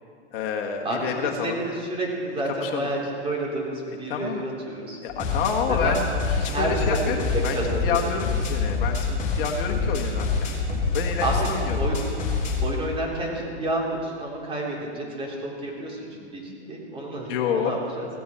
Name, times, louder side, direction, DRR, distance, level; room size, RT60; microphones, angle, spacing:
voice 1, 0.3-1.6 2.6-2.9 4.1-4.4 5.0-6.0 6.4-7.2 7.4-10.5 10.9-11.8 17.3-17.8, left 7 dB, 50° left, 2 dB, 1.5 m, -28 dB
voice 2, 0.8-5.0 5.7-5.9 6.4-6.7 7.2-8.0 11.2-11.5 11.7-12.0 12.6-18.1, right 2 dB, 15° right, -3 dB, 3.5 m, -30 dB
sound 1, 5.1-12.7, left 4 dB, 20° left, 3.2 m, -26 dB
17.0 x 15.5 x 4.4 m, 2.3 s
hypercardioid pair, 130°, 35 cm